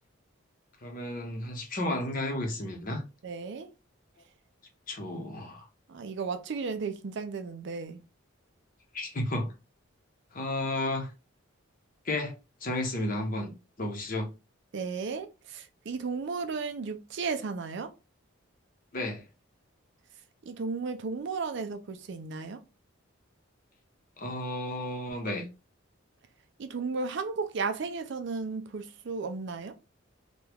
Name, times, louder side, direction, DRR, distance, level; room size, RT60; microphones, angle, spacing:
voice 1, 0.8-3.0 4.9-5.7 8.9-9.5 10.3-11.1 12.0-12.3 12.6-13.5 13.8-14.3 18.9-19.2 24.2-25.5, left 1 dB, 40° left, 0.8 m, -32 dB
voice 2, 3.2-3.7 5.9-8.0 14.7-17.9 20.4-22.6 26.6-29.8, right 4 dB, 55° right, 0.4 m, -34 dB
2.9 x 2.3 x 3.4 m
head